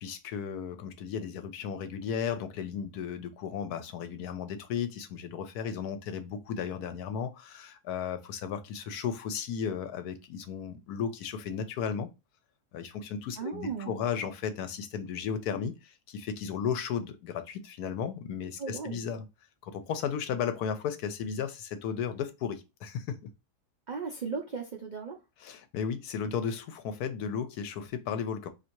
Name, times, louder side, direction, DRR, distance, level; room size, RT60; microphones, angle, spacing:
voice 1, 0.0-12.1 12.7-19.3 19.6-23.2 25.4-28.5, left 7 dB, 75° left, 1.1 m, -34 dB
voice 2, 13.4-14.0 18.6-19.0 23.9-25.2, right 5 dB, 65° right, 0.4 m, -36 dB
2.8 x 2.7 x 4.4 m
omnidirectional pair, 1.7 m